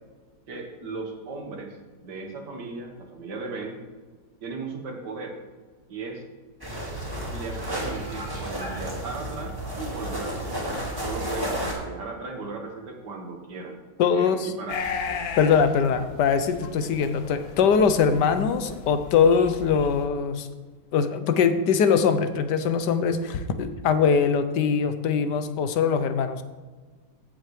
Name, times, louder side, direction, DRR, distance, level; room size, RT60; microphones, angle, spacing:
voice 1, 0.5-3.8 4.4-5.4 5.9-6.2 7.3-10.7 11.0-13.8 14.1-14.8 16.0-16.1 16.8-17.0 23.5-23.7, right 3 dB, 75° right, 2 dB, 2.2 m, -37 dB
sound 1, 6.6-11.7, right 1 dB, 15° right, 2.4 m, -32 dB
voice 2, 14.0-14.5 15.4-20.5 20.9-26.4, left 6 dB, 80° left, 10 dB, 1.4 m, -22 dB
sound 2, 14.7-20.1, left 5 dB, 65° left, 1.3 m, -36 dB
15.5 x 7.7 x 3.2 m, 1.3 s
omnidirectional pair, 1.8 m